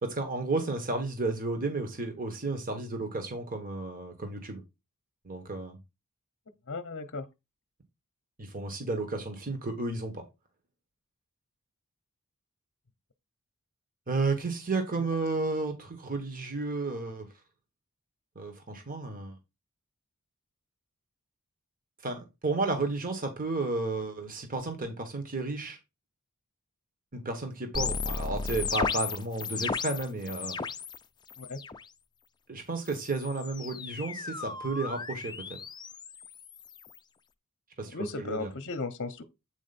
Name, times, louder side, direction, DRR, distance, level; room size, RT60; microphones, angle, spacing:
voice 1, 0.0-4.6 5.2-5.8 8.4-10.2 14.1-17.3 18.3-19.4 22.0-25.8 27.1-30.6 32.5-35.3 37.8-38.5, right 3 dB, 40° right, 1.4 m, -32 dB
voice 2, 6.7-7.3 31.4-31.6 37.9-39.2, left 3 dB, 55° left, 0.8 m, -35 dB
sound 1, 27.7-31.0 31.3-31.8 32.9-37.0, left 5 dB, 20° left, 0.5 m, -35 dB
8.3 x 4.4 x 4.2 m
head